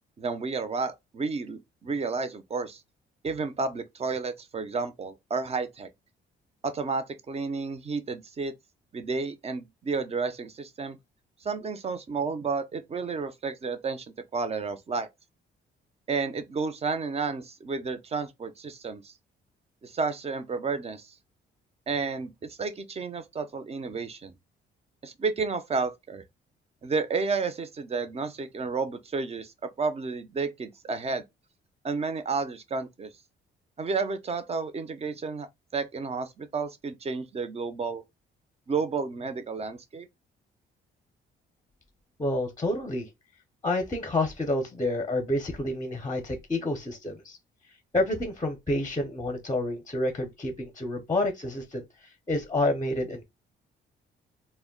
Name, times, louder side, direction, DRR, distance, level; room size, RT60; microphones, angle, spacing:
voice 1, 0.2-2.8 3.2-5.9 6.6-8.6 8.9-11.0 11.4-14.1 14.3-15.1 16.1-19.1 19.8-21.1 21.9-24.4 25.0-26.2 26.8-31.2 31.8-33.1 33.8-35.5 35.7-38.0 38.7-40.1, right 4 dB, 30° right, 0.5 m, -31 dB
voice 2, 42.2-43.1 43.6-47.4 47.9-53.2, left 1 dB, 20° left, 0.6 m, -29 dB
2.1 x 2.1 x 3.7 m
cardioid pair, 90°, 20 cm